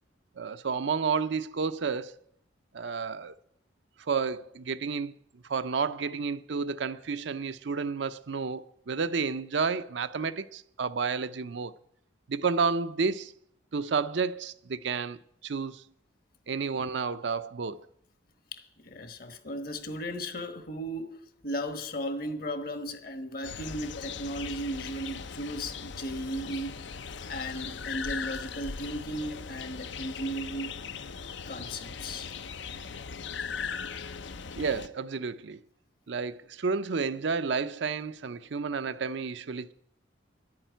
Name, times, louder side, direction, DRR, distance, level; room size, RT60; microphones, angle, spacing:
voice 1, 0.4-2.2 2.7-3.3 4.0-5.1 5.5-11.7 12.3-13.3 13.7-15.8 16.5-17.8 34.5-35.6 36.1-39.7, right 5 dB, 70° right, 0.6 m, -31 dB
voice 2, 18.5-26.8 27.3-30.7 31.5-32.3, equal, 50° left, 1.2 m, -36 dB
sound 1, 23.4-34.9, left 6 dB, 70° left, 0.6 m, -39 dB
11.0 x 8.8 x 9.1 m
head